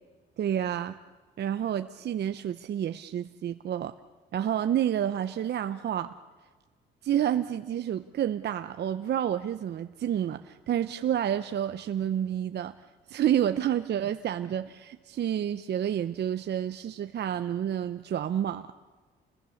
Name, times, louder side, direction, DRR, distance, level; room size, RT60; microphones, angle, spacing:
voice 1, 0.4-1.0 1.4-3.9 4.3-6.1 7.0-12.7 13.1-18.7, right 10 dB, 60° right, 10 dB, 0.7 m, -29 dB
29.0 x 21.0 x 7.1 m, 1.3 s
cardioid pair, 90°, 20 cm